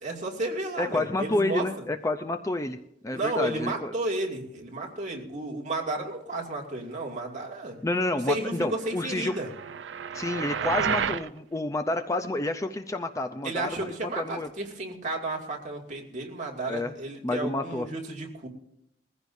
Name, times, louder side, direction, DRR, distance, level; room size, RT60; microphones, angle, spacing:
voice 1, 0.0-1.6 3.1-7.8 8.3-9.5 13.4-18.5, right 2 dB, 40° right, -1 dB, 2.5 m, -32 dB
voice 2, 0.8-3.9 7.8-9.3 10.1-14.5 16.7-16.9 17.2-17.9, left 2 dB, 15° left, 7 dB, 0.5 m, -29 dB
sound 1, 9.0-11.3, right 6 dB, 75° right, 0.5 m, -31 dB
20.5 x 15.0 x 2.7 m, 0.79 s
head